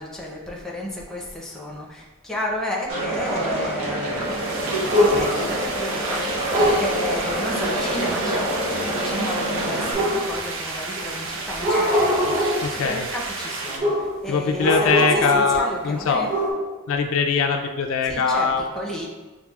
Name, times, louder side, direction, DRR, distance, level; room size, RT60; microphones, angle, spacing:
voice 1, 0.0-6.2 6.6-8.5 8.9-16.3 18.1-19.1, left 1 dB, ahead, -3 dB, 0.5 m, -32 dB
sound 1, 2.9-9.9, right 1 dB, 85° right, 1.0 m, -26 dB
sound 2, 4.1-13.8, right 3 dB, 60° right, 0.6 m, -32 dB
sound 3, 4.9-5.5 6.5-6.9 9.9-10.6 11.5-12.7 13.8-14.2 14.6-15.7 16.0-16.5, equal, 40° right, 0.9 m, -22 dB
voice 2, 12.6-13.1 14.3-16.3 16.9-18.6, left 5 dB, 65° left, 4 dB, 0.4 m, -21 dB
7.0 x 2.4 x 2.3 m, 1.2 s
head